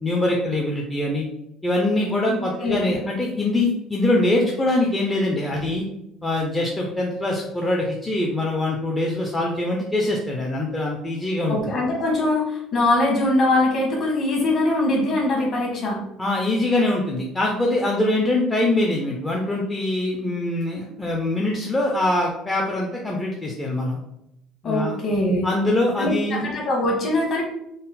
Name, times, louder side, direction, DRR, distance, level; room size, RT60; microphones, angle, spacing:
voice 1, 0.0-1.2 1.6-5.8 6.2-11.6 16.2-24.0 24.6-25.0 25.4-26.4, left 2 dB, 10° left, -2 dB, 0.4 m, -23 dB
voice 2, 2.3-2.9 11.5-16.0 24.6-25.5 26.0-27.4, left 2 dB, 35° left, -1 dB, 1.1 m, -22 dB
3.8 x 2.0 x 4.0 m, 0.82 s
cardioid pair, 175°, 0 cm